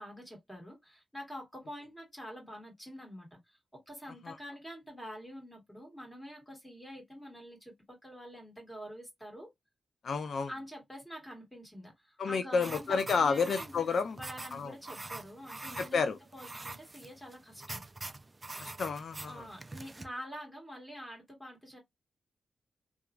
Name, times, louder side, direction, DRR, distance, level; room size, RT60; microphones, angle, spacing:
voice 1, 0.0-9.5 10.5-13.7 14.1-17.8 19.3-21.8, equal, 10° left, 1.7 m, -47 dB
voice 2, 10.0-10.5 12.2-14.2 14.5-14.7 15.8-16.2 18.6-19.5, left 5 dB, 70° left, 0.3 m, -30 dB
sound 1, 12.6-20.1, right 2 dB, 25° right, 0.4 m, -45 dB
2.9 x 2.3 x 2.3 m
cardioid pair, 100°, 0 cm